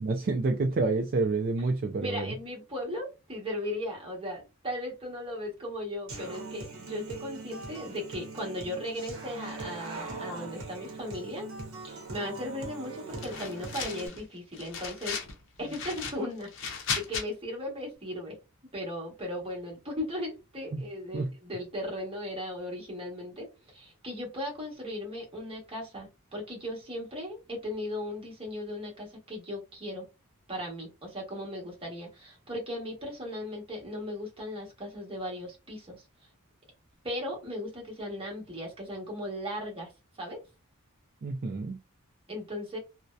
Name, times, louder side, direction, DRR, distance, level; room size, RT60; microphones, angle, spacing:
voice 1, 0.0-2.3 20.7-20.8 21.1-21.3 41.2-41.8, right 3 dB, 45° right, 0.3 m, -28 dB
voice 2, 2.0-11.5 11.8-15.2 15.6-18.3 18.7-30.1 30.5-36.0 37.0-40.4 42.3-42.8, left 1 dB, 25° right, 1.0 m, -37 dB
Human voice / Acoustic guitar, 6.1-14.1, right 3 dB, 65° right, 0.8 m, -41 dB
sound 1, 13.2-14.2 14.5-15.3 15.7-17.2, left 6 dB, 60° left, 0.6 m, -35 dB
2.6 x 2.1 x 2.2 m
head